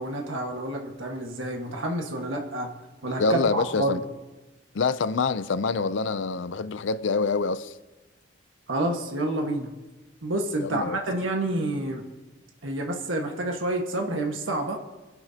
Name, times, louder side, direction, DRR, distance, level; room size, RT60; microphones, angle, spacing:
voice 1, 0.0-2.7 3.0-4.0 8.7-9.7 10.2-12.0 12.6-14.8, right 1 dB, 90° right, 1.5 m, -28 dB
voice 2, 3.2-4.0 4.7-7.7 10.6-11.0, left 4 dB, 75° left, 0.5 m, -26 dB
23.5 x 11.0 x 2.8 m
head